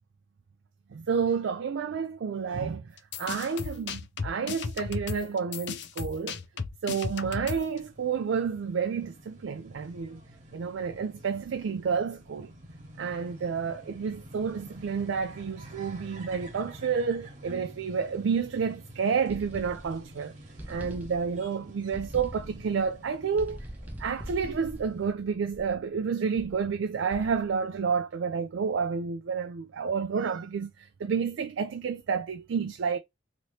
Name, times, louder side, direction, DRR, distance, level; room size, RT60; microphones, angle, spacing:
voice 1, 0.9-2.9 3.2-6.4 6.8-10.2 10.5-12.5 13.0-20.3 20.7-23.7 24.0-33.0, right 6 dB, 75° right, 0.4 m, -30 dB
sound 1, 3.0-7.8, left 5 dB, 60° left, 0.5 m, -35 dB
sound 2, 7.3-25.1, right 1 dB, 40° right, 1.2 m, -49 dB
sound 3, 19.3-20.1 20.6-21.5 21.9-22.7 23.4-25.9 26.4-26.7 27.1-27.6, equal, 10° right, 0.5 m, -43 dB
3.0 x 2.8 x 3.1 m
head